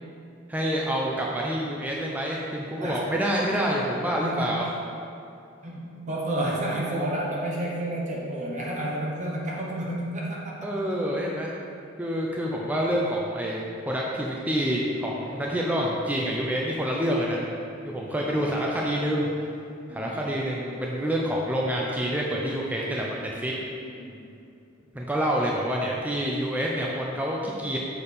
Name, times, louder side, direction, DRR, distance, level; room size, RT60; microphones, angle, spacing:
voice 1, 0.5-4.7 10.6-11.5 12.0-17.4 17.8-19.3 19.9-23.6 24.9-27.8, equal, 10° right, -3 dB, 0.5 m, -27 dB
voice 2, 4.1-4.6 5.6-10.7 18.3-18.5 19.9-20.2 23.8-24.2, right 1 dB, 40° right, -4 dB, 1.1 m, -31 dB
6.8 x 5.1 x 4.3 m, 2.5 s
head